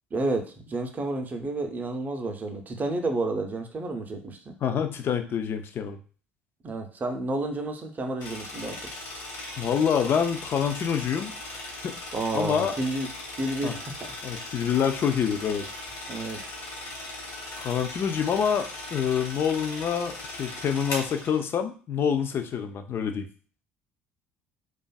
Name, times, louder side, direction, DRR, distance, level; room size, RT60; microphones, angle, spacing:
voice 1, 0.1-4.6 6.6-8.9 12.1-13.1 13.4-14.5 16.1-16.4, right 2 dB, 30° right, 5 dB, 0.5 m, -31 dB
voice 2, 4.6-6.0 9.6-11.3 11.8-12.0 12.3-12.7 13.6-13.7 14.2-15.6 17.6-23.3, left 7 dB, 40° left, 7 dB, 0.4 m, -26 dB
sound 1, 8.2-21.4, left 2 dB, 60° left, 1.0 m, -38 dB
2.5 x 2.3 x 2.2 m, 0.40 s
figure-of-eight pair, 55°, 6 cm